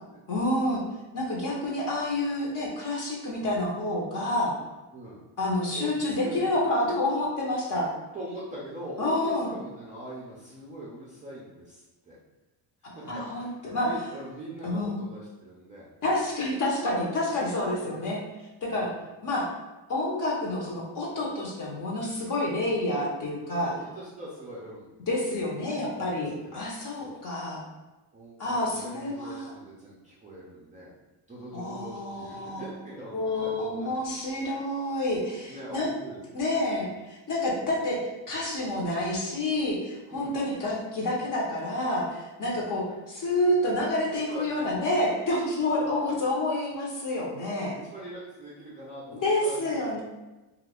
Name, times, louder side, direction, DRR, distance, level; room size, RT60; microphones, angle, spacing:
voice 1, 0.3-0.8 1.1-4.6 5.4-7.9 9.0-9.5 12.8-13.9 14.6-15.0 16.0-18.2 18.6-18.9 19.2-19.5 19.9-23.7 25.1-27.6 28.4-29.5 31.5-32.6 33.1-35.9 36.3-47.8 49.2-50.0, left 1 dB, 40° left, -3 dB, 0.9 m, -28 dB
voice 2, 8.1-12.2 12.8-15.9 17.8-18.1 18.7-18.9 23.5-24.9 25.7-26.6 26.9-27.2 28.1-30.9 31.3-34.2 35.5-36.2 36.5-36.6 40.1-40.4 42.4-42.7 43.7-43.8 44.1-44.7 45.7-45.9 47.5-50.0, right 1 dB, 15° right, -6 dB, 0.4 m, -42 dB
2.8 x 2.4 x 3.5 m, 1.1 s
cardioid pair, 140°, 48 cm